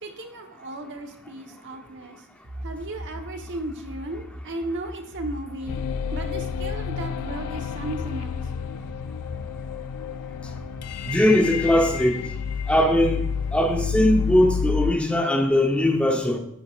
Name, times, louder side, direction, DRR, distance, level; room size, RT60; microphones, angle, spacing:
voice 1, 0.0-2.3 2.5-8.6, right 1 dB, 55° right, 1.2 m, -35 dB
sound 1, 2.4-9.7 10.4-12.9, equal, 75° right, 2.7 m, -42 dB
sound 2, 5.7-14.9, left 6 dB, 85° left, 0.4 m, -30 dB
voice 2, 11.0-12.2 12.7-13.2 13.5-16.4, left 1 dB, 5° left, 0.8 m, -20 dB
9.7 x 8.3 x 2.5 m
head